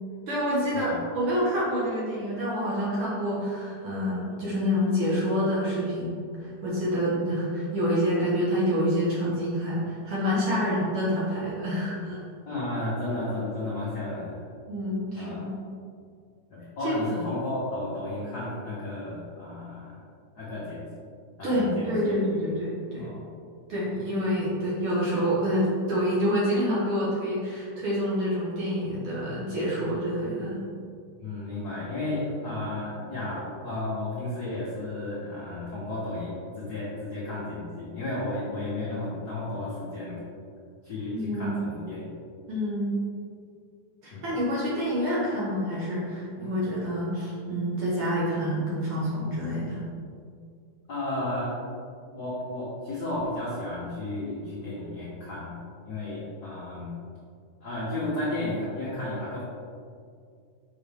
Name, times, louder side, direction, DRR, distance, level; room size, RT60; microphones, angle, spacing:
voice 1, 0.3-12.2 14.7-15.6 16.8-16.9 21.4-23.1 23.7-30.6 41.1-41.5 42.5-43.0 44.0-49.8, equal, 55° right, -7 dB, 1.7 m, -27 dB
voice 2, 12.5-14.4 15.1-15.4 16.5-20.0 20.3-20.9 21.4-22.1 23.0-23.2 31.2-40.2 40.8-42.1 44.1-44.3 50.9-51.5 52.1-55.6 55.8-56.9 57.6-59.4, left 2 dB, 65° left, -8 dB, 0.9 m, -33 dB
6.4 x 5.7 x 3.5 m, 2.3 s
omnidirectional pair, 3.6 m